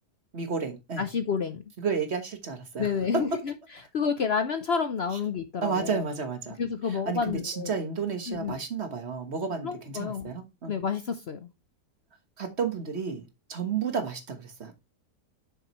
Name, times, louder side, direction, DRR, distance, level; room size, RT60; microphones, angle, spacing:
voice 1, 0.3-1.1 1.8-3.2 5.1-5.2 5.6-6.6 6.8-10.8 12.4-14.7, right 5 dB, 40° right, 1.4 m, -32 dB
voice 2, 1.0-1.6 2.8-3.3 3.9-6.0 6.6-7.7 8.3-8.5 9.6-10.3 10.7-11.5, left 6 dB, 60° left, 0.7 m, -29 dB
7.4 x 6.3 x 3.0 m
omnidirectional pair, 1.8 m